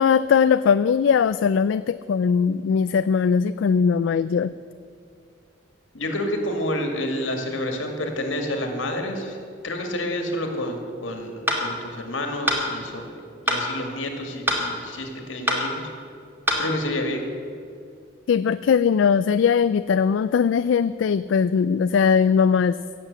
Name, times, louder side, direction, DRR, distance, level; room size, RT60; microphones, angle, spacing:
voice 1, 0.0-4.5 18.3-22.8, left 6 dB, 70° left, 14 dB, 0.3 m, -20 dB
voice 2, 5.9-9.4 9.6-13.2 13.5-15.9 16.6-17.3, left 1 dB, 85° left, 4 dB, 2.2 m, -29 dB
sound 1, 11.5-11.6 12.5-12.6 13.5-13.6 14.5-14.6 15.5-15.6 16.5-16.6, equal, 10° right, 2.2 m, -22 dB
16.5 x 7.7 x 8.1 m, 2.3 s
head